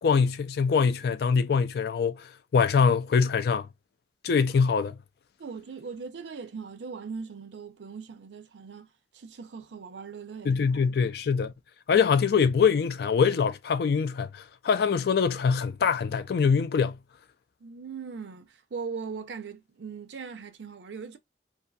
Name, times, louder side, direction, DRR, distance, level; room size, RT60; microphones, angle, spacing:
voice 1, 0.0-3.7 4.2-5.0 10.5-11.5 11.9-17.0, left 6 dB, 60° left, 0.3 m, -24 dB
voice 2, 5.4-10.6 17.6-21.2, right 5 dB, 80° right, 0.5 m, -40 dB
2.7 x 2.3 x 2.3 m
head